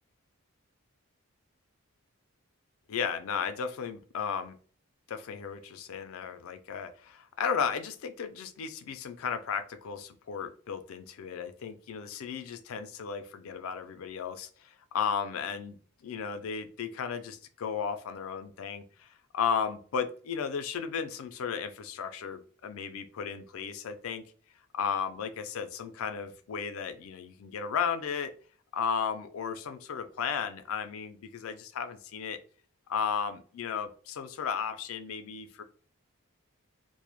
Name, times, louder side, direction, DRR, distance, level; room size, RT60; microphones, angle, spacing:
voice 1, 2.9-4.6 5.1-24.2 24.7-28.3 28.7-32.4 32.9-35.6, left 6 dB, 70° left, 8 dB, 0.4 m, -34 dB
2.1 x 2.0 x 3.0 m, 0.43 s
head